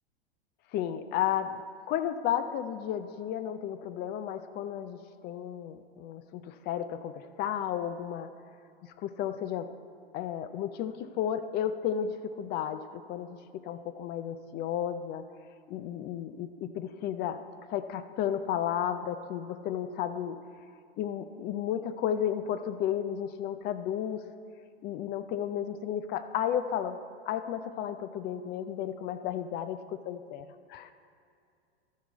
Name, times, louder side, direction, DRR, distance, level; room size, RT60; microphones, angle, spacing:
voice 1, 0.7-1.6 1.9-8.3 8.8-9.7 10.1-12.8 13.1-15.2 15.7-17.4 17.7-20.4 21.0-24.2 24.8-27.0 27.3-30.9, left 9 dB, 30° left, 11 dB, 0.5 m, -33 dB
12.5 x 10.5 x 4.1 m, 2.4 s
hypercardioid pair, 100°, 32 cm